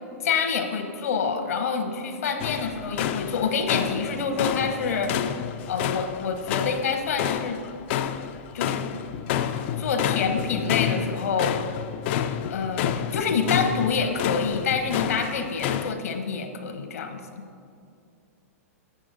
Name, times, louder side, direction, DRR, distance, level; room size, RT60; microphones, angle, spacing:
voice 1, 0.2-5.1 5.7-7.6 8.5-8.9 9.8-11.6 12.5-17.4, left 5 dB, 70° left, 6 dB, 0.9 m, -27 dB
sound 1, 2.4-15.9, left 9 dB, 50° left, 0.4 m, -29 dB
7.8 x 7.5 x 3.9 m, 2.4 s
hypercardioid pair, 110°, 8 cm